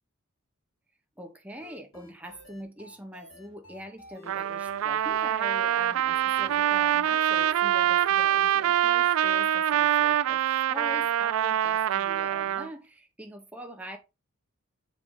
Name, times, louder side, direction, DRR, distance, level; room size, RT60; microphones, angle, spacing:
voice 1, 1.2-14.0, equal, 5° right, 1.2 m, -43 dB
sound 1, 1.6-8.9, left 3 dB, 70° left, 2.4 m, -52 dB
Trumpet, 4.3-12.7, right 11 dB, 70° right, 0.3 m, -25 dB
7.0 x 4.7 x 4.0 m
head